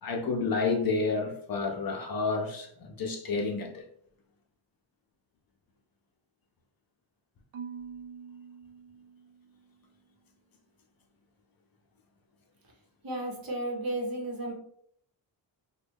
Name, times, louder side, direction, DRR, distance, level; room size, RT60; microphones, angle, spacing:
voice 1, 0.0-3.8, left 4 dB, 50° left, 3 dB, 0.6 m, -30 dB
Marimba xylophone / Wood, 7.5-9.7, right 6 dB, 75° right, 0.6 m, -45 dB
voice 2, 13.0-14.5, right 1 dB, 50° right, 1 dB, 0.9 m, -33 dB
3.1 x 2.2 x 3.4 m, 0.66 s
wide cardioid pair, 110°, 46 cm